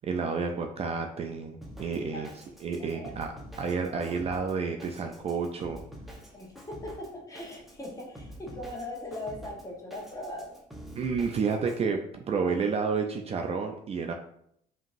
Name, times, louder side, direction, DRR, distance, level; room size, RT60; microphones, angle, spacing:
voice 1, 0.1-2.3 2.6-3.3 3.6-5.8 11.0-14.1, right 5 dB, 40° right, 4 dB, 0.4 m, -30 dB
Drum kit, 1.6-11.8, equal, ahead, 0.9 m, -47 dB
voice 2, 2.8-3.1 6.3-10.6, left 1 dB, 20° left, -1 dB, 1.3 m, -40 dB
5.1 x 3.0 x 2.6 m, 0.70 s
cardioid pair, 110°, 17 cm